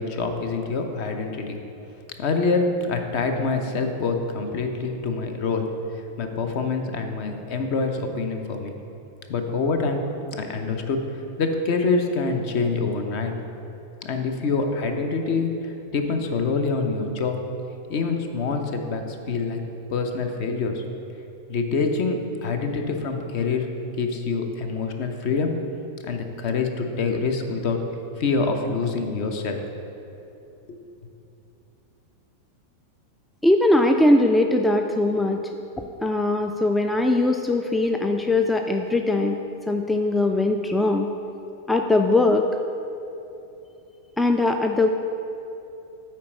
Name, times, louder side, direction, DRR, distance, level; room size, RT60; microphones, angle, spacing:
voice 1, 0.0-1.6 2.2-5.7 6.2-8.8 9.3-10.0 10.3-11.0 11.4-13.3 14.0-17.4 17.9-19.6 19.9-20.8 21.5-23.7 24.0-25.6 26.0-27.8 28.2-29.6 30.7-30.8, left 4 dB, 45° left, 5 dB, 0.7 m, -25 dB
voice 2, 33.4-35.4 36.0-39.4 39.7-41.1 41.7-42.5 44.2-44.9, left 2 dB, 5° left, 4 dB, 0.3 m, -20 dB
8.5 x 4.4 x 5.2 m, 2.9 s
figure-of-eight pair, 90°, 0 cm